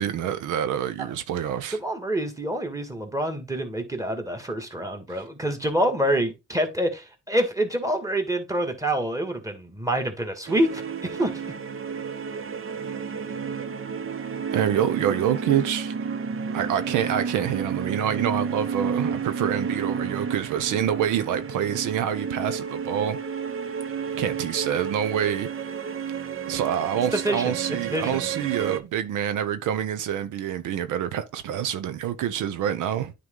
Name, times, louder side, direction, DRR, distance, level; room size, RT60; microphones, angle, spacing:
voice 1, 0.0-1.8 14.5-15.9 16.5-23.2 24.2-25.5 26.5-33.1, right 9 dB, 85° right, 0.8 m, -26 dB
voice 2, 1.8-11.3 27.1-28.2, right 1 dB, 10° right, 1.8 m, -27 dB
sound 1, 10.5-28.8, right 6 dB, 45° right, 0.8 m, -31 dB
9.4 x 3.8 x 3.8 m
cardioid pair, 90°, 30 cm